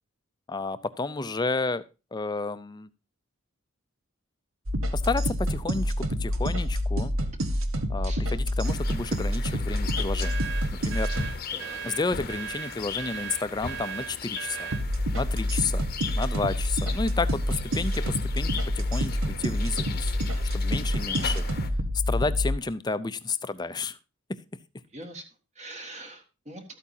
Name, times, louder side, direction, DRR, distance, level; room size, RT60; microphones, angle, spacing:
voice 1, 0.5-1.8 2.1-2.9 4.9-7.1 7.9-10.4 10.7-11.1 11.8-14.7 15.1-15.8 16.2-20.1 20.5-21.4 22.1-24.0, left 3 dB, 20° left, 14 dB, 0.5 m, -31 dB
sound 1, 4.7-11.3 14.7-22.6, equal, 70° right, 1.2 m, -27 dB
sound 2, 8.6-21.7, left 6 dB, 45° left, 0.8 m, -39 dB
sound 3, 10.2-14.9, right 8 dB, 55° right, 0.5 m, -37 dB
voice 2, 21.0-21.5 24.9-25.2 25.6-26.6, right 1 dB, 30° right, 5 dB, 1.6 m, -43 dB
12.5 x 8.5 x 2.7 m, 0.29 s
head